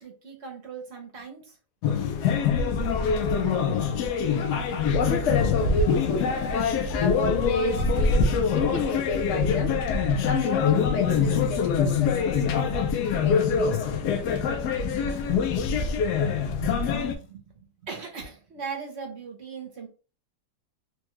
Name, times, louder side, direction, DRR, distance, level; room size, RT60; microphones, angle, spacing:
voice 1, 0.0-1.6 17.2-19.9, right 5 dB, 50° right, 0.9 m, -39 dB
sound 1, 1.8-17.1, left 6 dB, 80° left, 1.1 m, -24 dB
voice 2, 4.9-8.2 8.5-9.9 10.2-12.7 13.2-14.0, left 3 dB, 60° left, 0.8 m, -30 dB
3.5 x 2.2 x 3.0 m
omnidirectional pair, 1.8 m